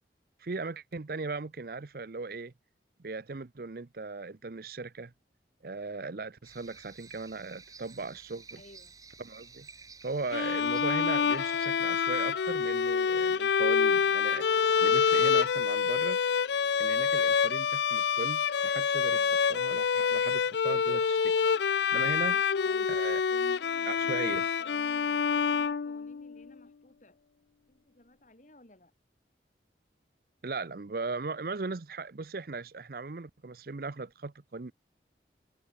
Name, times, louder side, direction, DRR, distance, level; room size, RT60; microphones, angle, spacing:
voice 1, 0.4-2.5 3.0-5.1 5.6-8.6 9.2-9.7 10.0-16.2 16.8-19.2 19.5-21.3 21.9-22.4 22.9-23.2 23.9-24.4 30.4-34.7, right 3 dB, 55° right, 0.7 m, -38 dB
sound 1, 6.4-11.7, right 5 dB, 20° right, 1.3 m, -52 dB
voice 2, 8.5-8.9 19.1-19.3 22.3-27.2 27.7-28.9, left 1 dB, 45° left, 3.2 m, -55 dB
Bowed string instrument, 10.3-26.4, left 6 dB, 75° left, 0.5 m, -27 dB
head